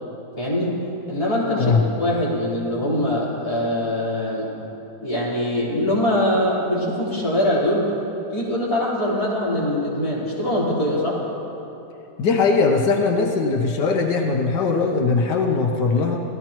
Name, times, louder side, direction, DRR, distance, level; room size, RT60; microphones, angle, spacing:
voice 1, 0.4-4.5 5.0-7.9 8.3-11.2, left 1 dB, 20° left, -8 dB, 4.1 m, -23 dB
voice 2, 12.2-16.2, left 4 dB, 85° left, 1 dB, 1.7 m, -20 dB
26.0 x 17.0 x 3.0 m, 3.0 s
omnidirectional pair, 1.8 m